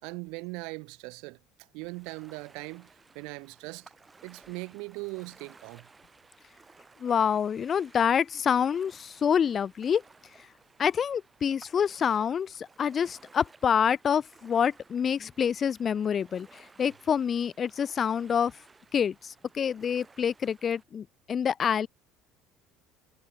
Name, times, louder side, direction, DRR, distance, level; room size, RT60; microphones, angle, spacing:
voice 1, 0.0-1.4 1.7-3.9 4.2-5.9, right 31 dB, 70° right, 3.0 m, -40 dB
Ocean, 1.8-20.8, right 4 dB, 20° right, 4.9 m, -57 dB
voice 2, 7.0-10.0 10.8-18.5 18.9-21.9, left 7 dB, 40° left, 0.3 m, -27 dB
hypercardioid pair, 70°, 0 cm